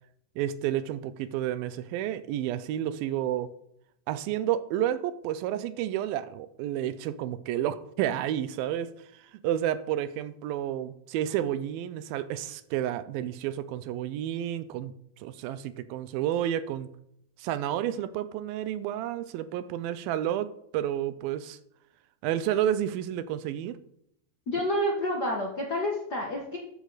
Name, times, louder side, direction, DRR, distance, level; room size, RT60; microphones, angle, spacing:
voice 1, 0.4-3.5 4.1-14.9 15.2-16.9 17.4-21.6 22.2-23.8, right 11 dB, 85° right, 14 dB, 2.4 m, -30 dB
voice 2, 24.5-26.6, left 1 dB, 80° left, 0 dB, 0.9 m, -29 dB
13.0 x 8.2 x 4.1 m, 0.74 s
omnidirectional pair, 4.2 m